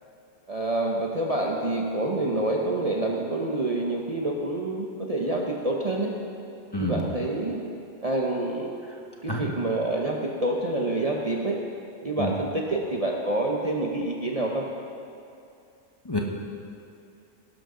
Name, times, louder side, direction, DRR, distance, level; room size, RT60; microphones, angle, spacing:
voice 1, 0.5-6.1 6.8-7.6 8.0-8.7 9.2-11.6 12.0-14.7, right 2 dB, 30° right, -1 dB, 0.9 m, -27 dB
voice 2, 6.7-7.0 9.3-9.4 12.2-12.3 16.0-16.2, left 1 dB, 20° left, -1 dB, 1.2 m, -27 dB
18.5 x 11.5 x 3.8 m, 2.5 s
omnidirectional pair, 1.4 m